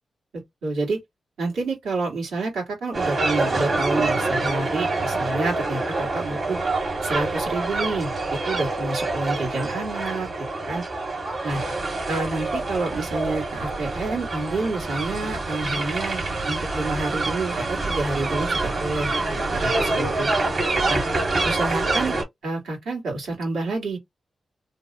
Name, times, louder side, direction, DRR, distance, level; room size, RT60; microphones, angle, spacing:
voice 1, 0.3-1.0 1.4-6.6 7.0-10.3 10.7-10.8 11.4-11.6 12.1-19.1 19.5-20.3 20.9-21.0 21.4-22.2 22.4-24.0, right 3 dB, 85° right, 2.0 m, -28 dB
sound 1, 2.9-22.2, right 2 dB, 55° right, 2.0 m, -26 dB
3.2 x 2.3 x 3.0 m
supercardioid pair, 45°, 0 cm